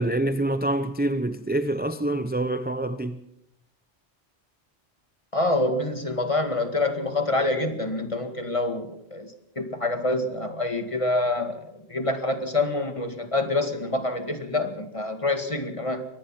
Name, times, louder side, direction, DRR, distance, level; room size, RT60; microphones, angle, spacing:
voice 1, 0.0-3.2, right 1 dB, 10° right, 0.7 m, -26 dB
voice 2, 5.3-16.1, left 2 dB, 30° left, 2.1 m, -26 dB
23.5 x 19.0 x 5.9 m
omnidirectional pair, 1.2 m